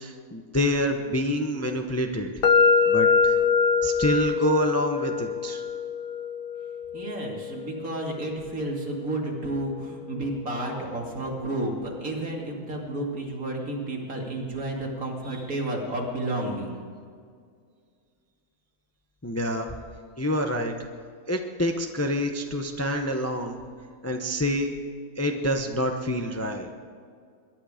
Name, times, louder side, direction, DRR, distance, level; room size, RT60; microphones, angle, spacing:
voice 1, 0.0-2.3 2.9-3.4 3.8-5.6 19.2-19.7 20.2-20.7 21.3-23.6 24.0-24.7 25.2-26.7, equal, 15° left, 4 dB, 0.7 m, -27 dB
sound 1, 2.4-10.3, left 5 dB, 60° left, 0.5 m, -25 dB
voice 2, 6.9-16.8, right 1 dB, 65° right, -1 dB, 2.9 m, -31 dB
22.0 x 11.0 x 5.1 m, 2.1 s
omnidirectional pair, 1.6 m